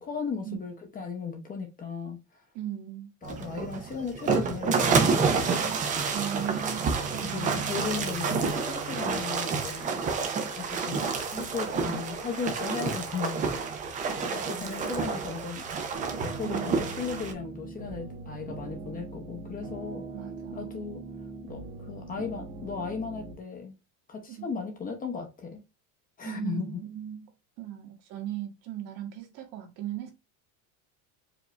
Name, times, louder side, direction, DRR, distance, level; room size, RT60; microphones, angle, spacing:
voice 1, 0.0-2.2 3.2-5.4 7.2-10.0 10.5-13.5 14.5-15.7 16.2-20.1 20.5-21.0 21.5-23.8 24.1-25.6 26.2-26.8, left 5 dB, 20° left, 0.8 m, -36 dB
voice 2, 2.5-3.1 6.1-7.8 14.1-15.1 16.4-17.0 20.1-20.8 24.3-24.5 26.2-27.3 27.6-30.1, right 11 dB, 65° right, 1.6 m, -38 dB
sound 1, 3.2-17.3, right 5 dB, 20° right, 0.5 m, -29 dB
sound 2, 15.9-23.3, right 3 dB, 45° right, 1.3 m, -41 dB
4.9 x 2.5 x 3.1 m
cardioid pair, 175°, 43 cm